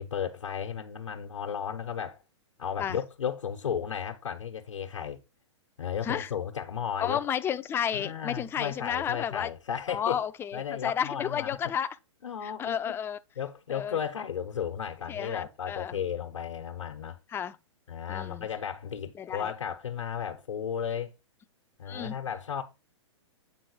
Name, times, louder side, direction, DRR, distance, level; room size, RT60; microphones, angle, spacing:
voice 1, 0.0-2.2 2.6-5.2 5.8-7.2 7.9-10.2 10.5-11.6 12.2-12.9 13.4-17.2 17.9-21.1 21.8-22.6, left 8 dB, 85° left, 1.1 m, -34 dB
voice 2, 7.0-9.5 9.9-12.0 12.4-13.2 13.7-14.0 15.1-16.0 17.3-17.6 18.1-18.5 19.1-19.5 21.9-22.1, left 8 dB, 15° left, 0.4 m, -32 dB
7.7 x 3.9 x 4.7 m
hypercardioid pair, 125°, 16 cm